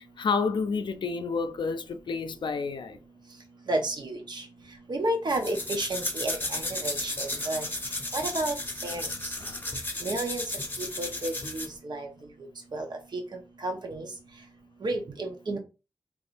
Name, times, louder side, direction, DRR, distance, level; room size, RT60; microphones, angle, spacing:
voice 1, 0.0-3.0 9.4-9.6, left 4 dB, 75° left, 0.4 m, -30 dB
voice 2, 3.7-4.4 4.9-7.6 8.1-8.5 8.8-9.1 10.0-10.4 11.0-12.1 12.7-12.9 13.1-13.2 13.6-14.1 14.8-15.6, right 2 dB, 65° right, 0.9 m, -31 dB
sound 1, 5.3-11.8, left 2 dB, 25° left, 0.7 m, -34 dB
3.5 x 3.0 x 2.5 m
cardioid pair, 60°, 8 cm